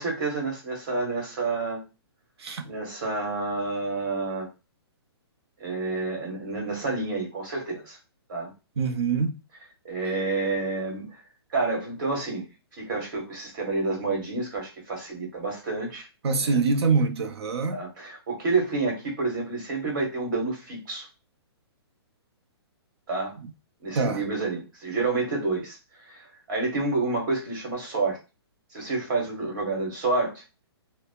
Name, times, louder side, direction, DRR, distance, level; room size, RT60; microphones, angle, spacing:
voice 1, 0.0-1.8 2.6-4.5 5.6-8.0 8.3-8.5 9.8-11.1 11.5-12.4 12.8-16.1 16.4-16.6 17.7-21.0 23.1-23.4 23.8-25.8 26.1-26.2 26.5-28.2 28.7-30.4, right 3 dB, 50° right, 1.4 m, -29 dB
voice 2, 8.8-9.3 16.2-17.8 24.0-24.2, right 4 dB, 70° right, 0.6 m, -24 dB
3.2 x 2.0 x 2.2 m
hypercardioid pair, 160°, 14 cm